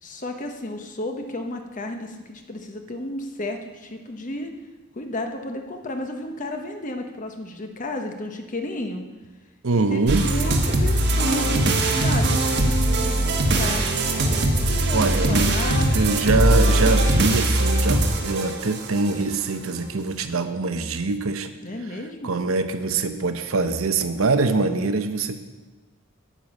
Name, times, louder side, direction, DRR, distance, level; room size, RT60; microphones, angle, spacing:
voice 1, 0.0-4.5 4.9-9.0 9.7-11.6 12.0-13.9 14.6-15.9 21.6-22.4, left 1 dB, 40° left, 4 dB, 1.1 m, -32 dB
voice 2, 9.6-10.3 14.9-21.5 21.9-25.4, right 3 dB, 75° right, 8 dB, 0.8 m, -24 dB
sound 1, 10.1-19.1, right 1 dB, 55° right, 1.4 m, -21 dB
9.2 x 8.9 x 6.4 m, 1.2 s
head